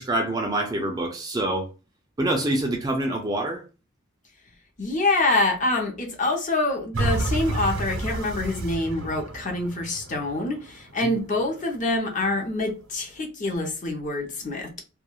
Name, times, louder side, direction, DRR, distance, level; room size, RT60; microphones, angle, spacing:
voice 1, 0.0-1.7 2.2-3.6 11.0-11.1, right 1 dB, 20° right, 0.3 m, -26 dB
voice 2, 4.8-14.8, left 2 dB, 35° left, 0.6 m, -26 dB
sound 1, 6.9-12.0 12.5-12.6, right 2 dB, 65° right, 0.5 m, -30 dB
2.2 x 2.2 x 2.9 m
head